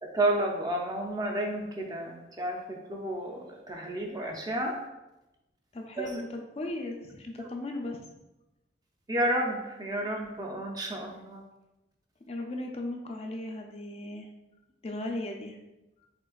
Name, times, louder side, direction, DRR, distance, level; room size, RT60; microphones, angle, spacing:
voice 1, 0.0-4.8 6.0-6.2 9.1-11.4, right 1 dB, 20° right, 1 dB, 0.5 m, -31 dB
voice 2, 5.7-8.0 12.2-14.3 14.8-15.6, left 1 dB, 35° left, 2 dB, 0.4 m, -37 dB
5.1 x 3.7 x 2.4 m, 0.98 s
head